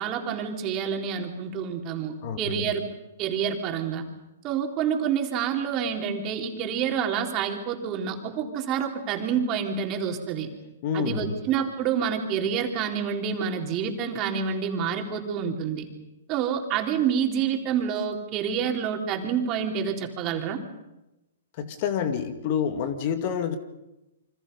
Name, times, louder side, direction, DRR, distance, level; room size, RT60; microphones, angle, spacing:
voice 1, 0.0-2.8 3.2-4.0 4.4-10.5 10.9-15.9 16.3-20.6, right 7 dB, 30° right, 2 dB, 3.7 m, -28 dB
voice 2, 2.2-2.7 10.8-11.3 21.6-23.6, left 7 dB, 45° left, 9 dB, 2.1 m, -28 dB
28.5 x 25.0 x 5.5 m, 0.97 s
hypercardioid pair, 135°, 0 cm